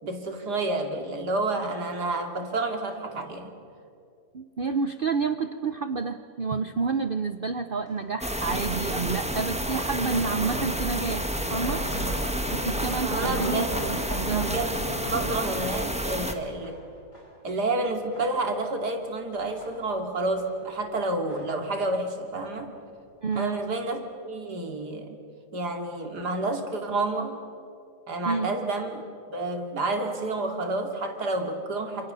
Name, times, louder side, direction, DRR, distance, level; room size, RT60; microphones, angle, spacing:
voice 1, 0.0-3.5 13.0-13.9 14.2-16.8 17.4-22.7 23.4-25.2 25.5-27.4 28.1-29.0 29.3-32.1, right 2 dB, 80° right, 4 dB, 3.1 m, -29 dB
voice 2, 4.3-11.9 12.5-14.6 23.2-23.6 28.3-28.5, right 4 dB, 45° right, 9 dB, 0.8 m, -29 dB
sound 1, 7.9-8.2 9.1-11.0 11.3-16.1 16.6-17.5 17.9-18.7 19.2-20.6 20.9-22.0 22.3-22.9 23.3-23.7 24.0-24.1, equal, 80° left, 6.2 m, -39 dB
sound 2, 8.2-16.3, equal, 5° right, 1.5 m, -30 dB
28.0 x 27.5 x 6.8 m, 2.4 s
omnidirectional pair, 1.7 m